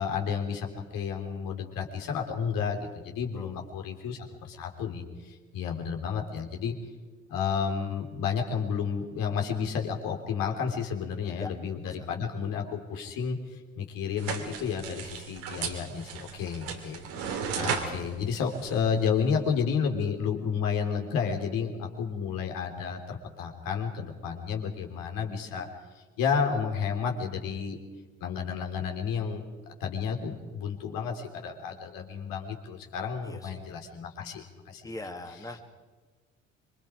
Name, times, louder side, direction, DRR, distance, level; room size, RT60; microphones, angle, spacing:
voice 1, 0.0-6.8 7.3-27.8 28.2-29.4 29.8-34.9, left 6 dB, 60° left, 3 dB, 3.3 m, -31 dB
sound 1, 14.2-19.4, right 6 dB, 70° right, 2.9 m, -36 dB
voice 2, 33.2-33.6 34.8-35.6, left 2 dB, 10° left, 4 dB, 2.6 m, -41 dB
25.5 x 24.5 x 5.0 m, 1.3 s
figure-of-eight pair, 50°, 37 cm